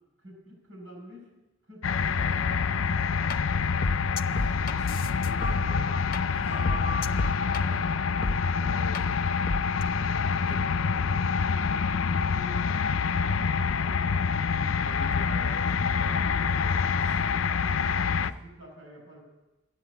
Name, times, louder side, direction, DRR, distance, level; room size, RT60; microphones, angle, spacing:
voice 1, 0.2-1.3 1.6-2.6 6.4-9.0 9.8-12.8 13.3-15.2 16.2-16.7 18.2-19.2, right 1 dB, 90° right, 2 dB, 6.5 m, -49 dB
sound 1, 1.8-18.3, left 5 dB, 80° left, 0.5 m, -26 dB
sound 2, 3.3-3.4 3.8-6.2 6.5-7.6 8.2-8.4 8.9-9.0 9.5-9.8, left 2 dB, 45° left, 0.7 m, -31 dB
voice 2, 4.2-5.9 6.2-6.5 8.6-9.0 10.4-10.6 14.8-17.2, equal, 70° right, -1 dB, 1.8 m, -45 dB
14.0 x 10.0 x 8.4 m, 1.1 s
head